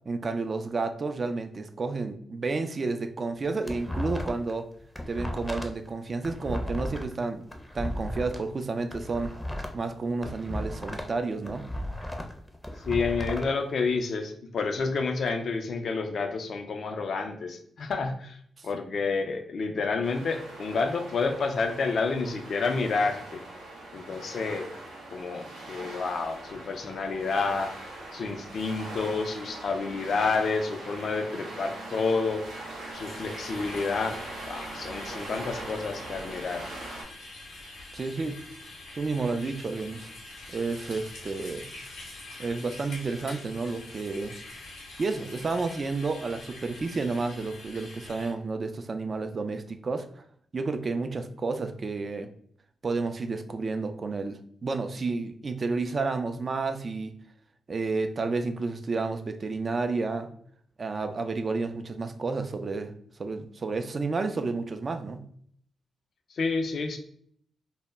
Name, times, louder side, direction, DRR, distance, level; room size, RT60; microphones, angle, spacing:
voice 1, 0.1-4.7 5.1-7.5 7.7-9.3 9.7-11.7 18.6-18.7 37.9-38.4 38.9-40.1 40.5-41.7 42.4-44.4 45.0-50.2 50.5-52.3 52.8-57.1 57.7-60.3 60.8-65.2, right 3 dB, 50° right, 8 dB, 0.3 m, -31 dB
sound 1, 3.3-4.5 4.8-8.4 8.8-11.2 11.4-13.5, left 1 dB, 10° left, 0.5 m, -35 dB
voice 2, 12.8-18.4 18.6-23.4 23.9-24.7 25.1-32.4 32.9-36.7 66.3-67.0, left 4 dB, 65° left, 6 dB, 0.4 m, -29 dB
sound 2, 20.0-37.0, right 2 dB, 90° right, 0.6 m, -41 dB
sound 3, 32.9-48.3, left 2 dB, 85° left, 0.7 m, -45 dB
2.1 x 2.0 x 3.3 m, 0.62 s
hypercardioid pair, 40°, 0 cm